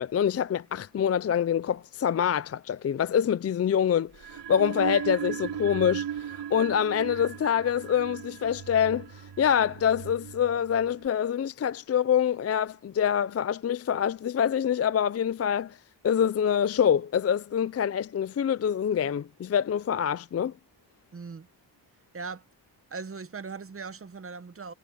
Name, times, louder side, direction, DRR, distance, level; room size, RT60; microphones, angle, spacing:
voice 1, 0.0-9.1 9.4-15.8 16.0-20.5, left 8 dB, 35° left, 0.4 m, -26 dB
sound 1, 4.1-11.1, right 9 dB, 75° right, 4.2 m, -37 dB
voice 2, 21.1-21.5 22.1-22.4 22.9-24.7, right 5 dB, 30° right, 1.0 m, -39 dB
wide cardioid pair, 120°, 43 cm